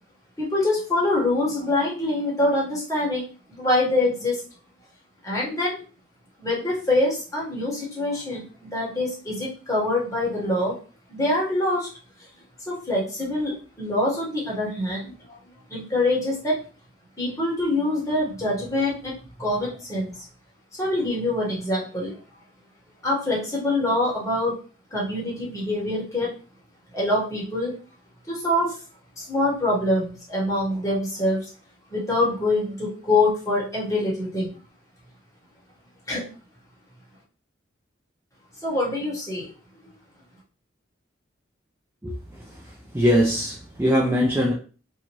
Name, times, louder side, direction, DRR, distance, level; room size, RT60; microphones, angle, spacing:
voice 1, 0.4-4.4 5.2-5.7 6.4-10.7 11.1-11.9 12.7-15.1 15.7-16.5 17.2-19.1 19.4-20.2 20.8-22.1 23.0-24.5 24.9-26.3 26.9-27.7 28.3-28.7 29.2-31.5 31.9-34.5 36.1-36.2 38.6-39.5, left 1 dB, 15° left, -5 dB, 1.1 m, -25 dB
voice 2, 42.9-44.5, equal, 10° right, -3 dB, 0.4 m, -21 dB
2.7 x 2.5 x 3.0 m, 0.38 s
head